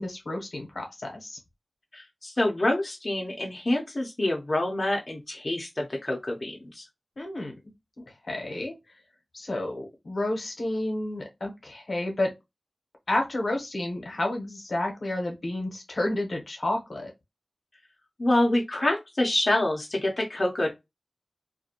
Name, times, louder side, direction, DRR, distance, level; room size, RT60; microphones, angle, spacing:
voice 1, 0.0-1.4 7.2-7.5 8.0-8.7 9.3-12.3 13.1-17.1, left 1 dB, 75° left, 0.8 m, -30 dB
voice 2, 1.9-6.8 18.2-20.7, left 1 dB, 45° left, 0.6 m, -26 dB
2.5 x 2.2 x 2.8 m
wide cardioid pair, 75°, 0 cm